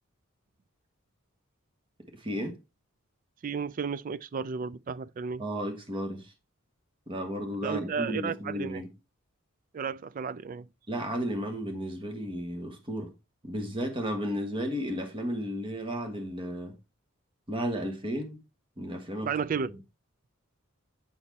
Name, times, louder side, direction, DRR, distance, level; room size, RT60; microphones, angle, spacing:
voice 1, 2.1-2.6 5.4-6.3 7.1-8.9 10.9-13.1 13.4-16.8 17.5-18.4 18.8-19.3, equal, 25° right, 1.4 m, -33 dB
voice 2, 3.4-5.5 7.6-8.8 9.7-10.7 19.2-19.7, right 6 dB, 40° right, 0.3 m, -33 dB
8.7 x 4.4 x 4.1 m
head